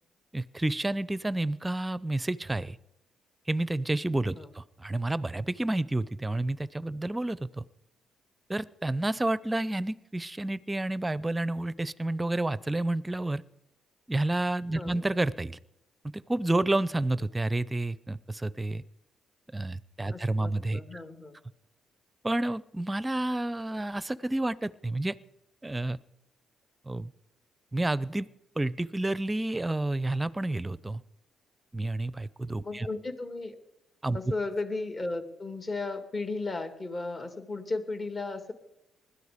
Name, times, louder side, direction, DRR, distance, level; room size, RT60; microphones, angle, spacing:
voice 1, 0.3-2.8 3.5-7.6 8.5-13.4 14.1-15.6 16.1-18.8 19.5-21.0 22.2-25.2 25.6-26.0 26.9-27.1 27.7-28.3 28.6-31.0 31.7-32.9 34.0-34.2, right 2 dB, 15° right, 20 dB, 0.6 m, -30 dB
voice 2, 20.1-21.4 32.6-33.6 34.1-38.5, left 3 dB, 35° left, 8 dB, 2.3 m, -35 dB
20.5 x 13.0 x 5.1 m, 0.86 s
cardioid pair, 90°, 0 cm